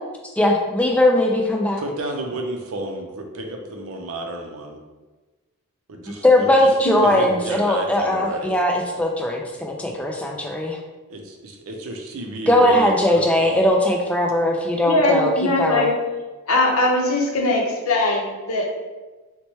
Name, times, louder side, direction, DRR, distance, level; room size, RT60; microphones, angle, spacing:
voice 1, 0.4-1.8 6.2-10.8 12.5-15.3 15.6-15.9, left 1 dB, 5° left, 1 dB, 0.3 m, -19 dB
voice 2, 1.8-4.8 5.9-6.7 7.0-8.6 11.1-13.7, right 1 dB, 65° right, 2 dB, 0.5 m, -31 dB
voice 3, 6.8-7.2 14.9-15.9 16.5-18.7, left 2 dB, 65° left, 0 dB, 0.7 m, -20 dB
3.0 x 2.2 x 4.2 m, 1.2 s
head